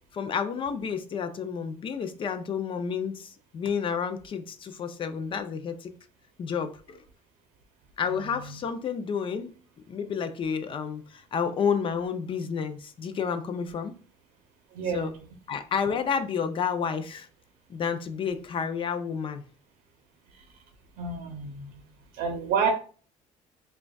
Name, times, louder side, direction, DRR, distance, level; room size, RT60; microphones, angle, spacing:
voice 1, 0.1-5.9 6.4-7.0 8.0-9.5 9.9-13.9 14.9-15.1 15.5-17.3 17.7-19.4, left 6 dB, 40° left, 0.4 m, -30 dB
voice 2, 14.7-15.1 21.0-21.8 22.1-22.7, right 6 dB, 90° right, 0.6 m, -29 dB
4.9 x 2.3 x 2.3 m
cardioid pair, 115°, 14 cm